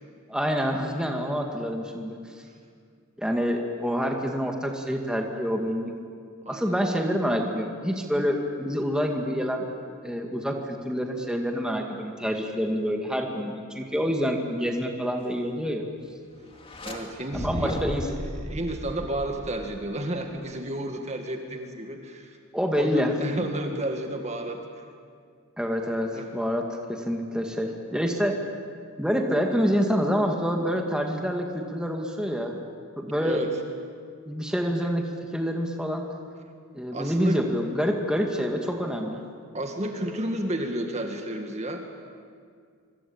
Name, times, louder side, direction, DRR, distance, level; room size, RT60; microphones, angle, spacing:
voice 1, 0.3-2.2 3.2-5.9 6.5-9.6 10.0-15.8 17.3-18.1 22.5-23.4 25.6-26.6 26.9-28.3 29.0-32.6 33.0-33.4 34.3-35.0 35.3-36.1 36.7-39.2, equal, 5° right, 2 dB, 2.1 m, -27 dB
voice 2, 6.5-7.1 16.8-17.7 18.3-22.4 22.8-24.6 26.1-26.3 33.2-33.5 36.9-37.4 39.5-41.8, right 1 dB, 30° right, 4 dB, 1.9 m, -32 dB
sound 1, 16.5-17.0 17.3-19.9, equal, 25° left, 2.7 m, -35 dB
26.0 x 25.0 x 8.7 m, 2.2 s
head